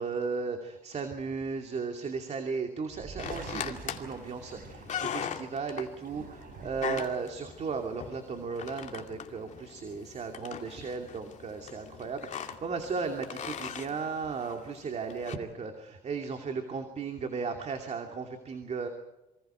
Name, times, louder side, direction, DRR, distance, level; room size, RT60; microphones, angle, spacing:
voice 1, 0.0-18.9, right 5 dB, 40° right, 4 dB, 2.7 m, -35 dB
sound 1, 2.9-5.4 5.9-7.1, right 5 dB, 55° right, 5.5 m, -46 dB
sound 2, 3.2-15.4, left 8 dB, 45° left, 2.4 m, -41 dB
27.5 x 24.5 x 4.5 m, 1.0 s
cardioid pair, 110°, 17 cm